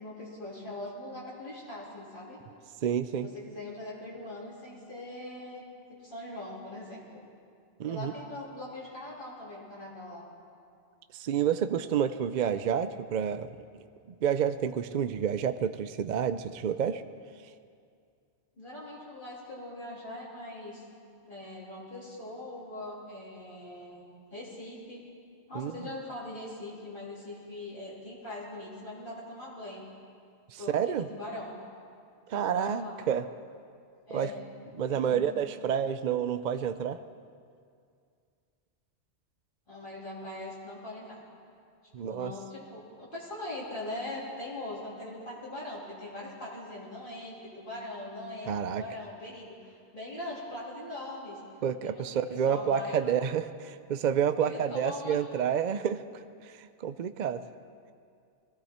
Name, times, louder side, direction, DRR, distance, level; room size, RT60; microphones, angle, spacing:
voice 1, 0.0-2.4 3.1-5.6 6.0-7.2 7.9-10.3 18.6-20.8 21.2-25.0 25.5-29.8 30.6-31.5 32.3-33.0 34.1-34.3 34.9-35.2 39.7-41.2 42.0-51.4 51.8-53.2 54.4-55.2, left 1 dB, 45° left, -7 dB, 3.3 m, -41 dB
voice 2, 2.8-3.3 7.8-8.1 11.1-13.5 14.2-17.0 25.5-25.7 30.5-31.1 32.3-33.3 34.1-34.3 34.8-37.0 41.9-42.3 48.5-48.8 51.6-57.4, right 8 dB, 55° right, 11 dB, 0.5 m, -29 dB
22.0 x 15.5 x 4.3 m, 2.3 s
omnidirectional pair, 1.2 m